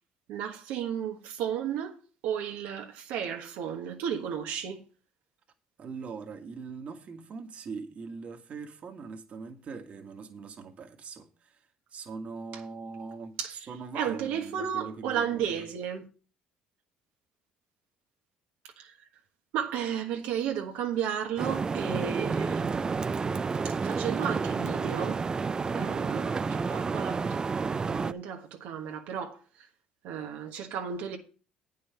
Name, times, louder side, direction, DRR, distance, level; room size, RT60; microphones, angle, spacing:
voice 1, 0.3-2.0 2.2-4.8 13.4-13.7 13.9-16.1 18.8-19.0 19.5-23.2 23.6-25.2 25.7-27.3 27.8-29.7 30.0-31.2, right 8 dB, 85° right, 1.3 m, -33 dB
voice 2, 5.8-13.3 13.7-15.6, right 5 dB, 45° right, 1.6 m, -41 dB
sound 1, 21.4-28.1, right 4 dB, 25° right, 0.4 m, -30 dB
8.9 x 5.6 x 6.7 m
cardioid pair, 105°, 3 cm